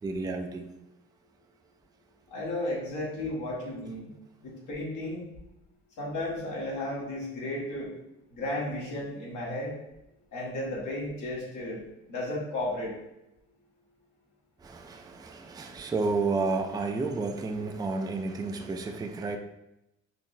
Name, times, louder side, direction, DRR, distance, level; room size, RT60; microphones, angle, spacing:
voice 1, 0.0-0.7 14.6-19.4, right 3 dB, 15° right, 4 dB, 0.3 m, -31 dB
voice 2, 2.3-4.1 4.4-5.3 6.0-7.9 8.3-9.8 10.3-11.8 12.1-12.9, left 1 dB, 75° left, -4 dB, 1.5 m, -34 dB
5.7 x 2.0 x 2.6 m, 0.87 s
cardioid pair, 90°, 30 cm